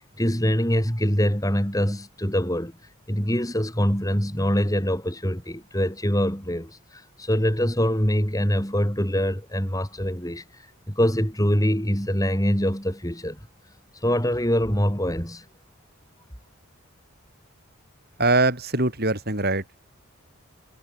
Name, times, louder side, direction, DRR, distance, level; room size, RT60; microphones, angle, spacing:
voice 1, 0.0-2.7 3.1-10.4 10.9-13.4 14.0-15.4, equal, 15° left, 7.6 m, -24 dB
voice 2, 18.2-19.6, right 2 dB, 45° right, 7.0 m, -22 dB
head